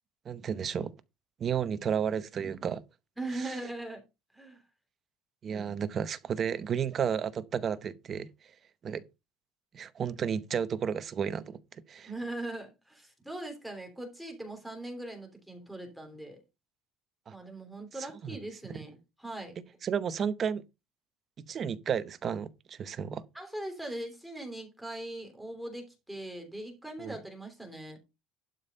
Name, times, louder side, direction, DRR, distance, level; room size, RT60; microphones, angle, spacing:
voice 1, 0.2-0.9 1.4-2.8 3.3-3.6 5.4-8.3 8.8-9.0 9.7-11.6 11.9-12.1 17.3-17.4 18.2-18.4 18.7-18.8 19.8-20.6 21.4-23.2 27.0-27.2, right 7 dB, 30° right, 0.8 m, -32 dB
voice 2, 3.2-4.0 4.3-4.6 5.5-5.7 12.1-16.4 17.3-19.5 23.3-28.0, right 1 dB, ahead, 3.2 m, -40 dB
11.5 x 5.2 x 5.5 m
cardioid pair, 160°, 0 cm